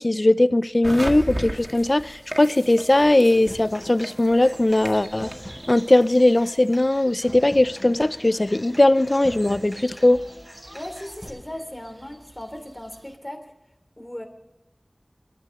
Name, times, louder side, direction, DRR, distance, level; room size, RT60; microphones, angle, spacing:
voice 1, 0.0-5.3 5.7-10.2, left 1 dB, 50° left, 0.6 m, -19 dB
sound 1, 0.8-13.1, right 1 dB, 35° right, 1.8 m, -39 dB
Human voice / Acoustic guitar, 3.3-11.3, equal, 10° right, 6.0 m, -43 dB
voice 2, 10.7-13.4 14.0-14.3, left 1 dB, 20° left, 3.1 m, -37 dB
22.5 x 13.0 x 3.8 m
wide cardioid pair, 45°, 0 cm